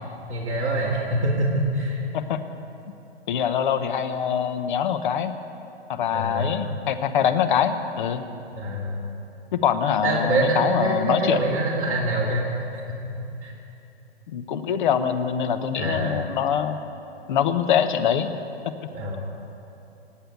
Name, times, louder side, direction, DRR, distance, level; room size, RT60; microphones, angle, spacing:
voice 1, 0.3-2.0 6.1-6.7 8.5-9.0 10.0-12.8 13.4-13.5 15.7-16.3 18.9-19.2, right 1 dB, 20° right, -6 dB, 2.1 m, -25 dB
voice 2, 3.3-5.3 5.9-8.2 9.5-11.4 14.3-16.8 17.3-18.3 18.6-18.7, left 8 dB, 50° left, 9 dB, 1.1 m, -24 dB
19.0 x 7.9 x 8.2 m, 2.8 s
hypercardioid pair, 130°, 33 cm